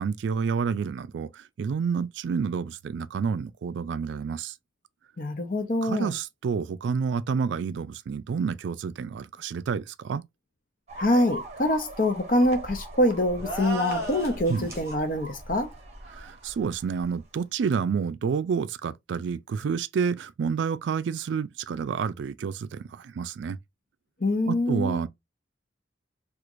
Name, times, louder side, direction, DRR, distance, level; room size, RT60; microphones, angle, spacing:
voice 1, 0.0-4.5 5.8-10.2 14.5-14.7 16.1-23.6 24.5-25.1, right 6 dB, 70° right, 0.3 m, -29 dB
voice 2, 5.2-6.1 11.0-15.7 24.2-25.0, left 1 dB, 45° left, 0.7 m, -25 dB
sound 1, 10.9-17.2, right 1 dB, 35° right, 0.8 m, -41 dB
sound 2, 13.4-14.9, right 1 dB, 15° right, 1.3 m, -34 dB
4.4 x 2.4 x 2.5 m
head